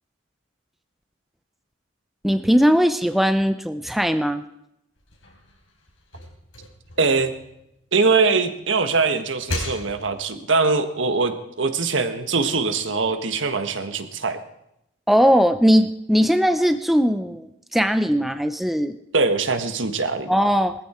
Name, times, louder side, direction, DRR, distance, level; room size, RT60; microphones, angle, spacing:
voice 1, 2.2-4.4 15.1-19.0 20.3-20.7, equal, ahead, 9 dB, 0.5 m, -19 dB
sound 1, 5.0-8.1 8.6-10.4, left 1 dB, 85° left, 4.1 m, -36 dB
voice 2, 7.0-7.3 7.9-14.4 19.1-20.3, right 4 dB, 70° right, 8 dB, 1.5 m, -22 dB
20.0 x 14.0 x 4.4 m, 0.82 s
head